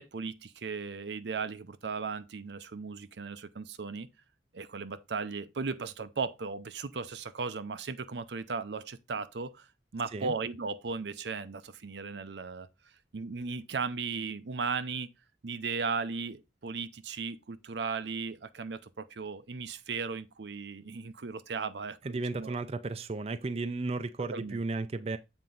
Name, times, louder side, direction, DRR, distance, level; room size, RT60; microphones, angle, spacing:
voice 1, 0.0-4.1 4.5-9.7 9.9-12.7 13.1-15.1 15.4-22.6 24.3-24.6, right 4 dB, 75° right, 0.6 m, -36 dB
voice 2, 22.0-25.2, right 3 dB, 35° right, 0.4 m, -34 dB
7.6 x 4.4 x 3.9 m
head